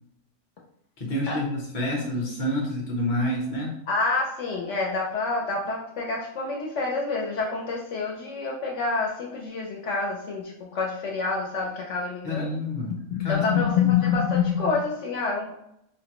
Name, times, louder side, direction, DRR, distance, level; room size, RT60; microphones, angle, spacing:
voice 1, 1.0-3.8 12.2-13.9, left 1 dB, 35° left, -1 dB, 0.6 m, -29 dB
voice 2, 3.9-12.5 13.1-15.5, left 5 dB, 65° left, -1 dB, 0.8 m, -27 dB
3.7 x 2.1 x 2.9 m, 0.77 s
omnidirectional pair, 1.5 m